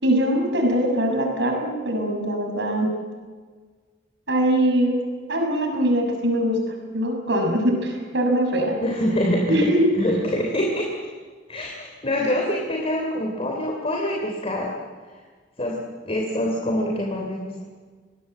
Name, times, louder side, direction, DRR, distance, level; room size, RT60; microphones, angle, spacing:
voice 1, 0.0-2.9 4.3-5.0 5.3-6.6 6.9-8.8 9.5-9.9, right 1 dB, 65° right, 2 dB, 6.3 m, -22 dB
voice 2, 8.8-9.7 9.9-11.1 11.5-14.8 15.6-15.8 16.0-17.6, left 1 dB, 30° left, 0 dB, 3.3 m, -25 dB
25.0 x 19.5 x 7.9 m, 1.5 s
head